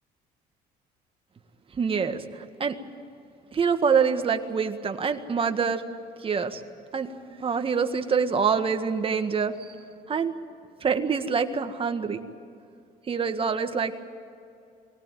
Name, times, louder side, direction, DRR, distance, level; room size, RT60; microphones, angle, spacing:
voice 1, 1.8-2.8 3.5-5.8 6.2-6.6 6.9-7.1 7.4-9.7 10.1-10.3 10.8-12.2 13.1-14.0, right 6 dB, 30° right, 7 dB, 1.7 m, -25 dB
24.0 x 18.0 x 9.2 m, 2.5 s
cardioid pair, 110°, 17 cm